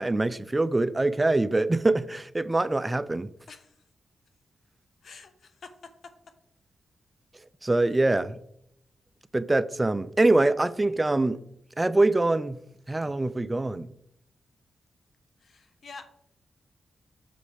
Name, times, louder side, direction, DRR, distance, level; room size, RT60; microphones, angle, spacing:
voice 1, 0.0-3.3 7.6-8.4 9.3-11.4 11.8-12.6 12.9-13.9, right 2 dB, 20° right, 0.4 m, -24 dB
voice 2, 3.5-3.8 5.0-5.7 15.4-16.0, left 4 dB, 65° left, 1.0 m, -47 dB
6.5 x 5.1 x 4.9 m
cardioid pair, 70°, 0 cm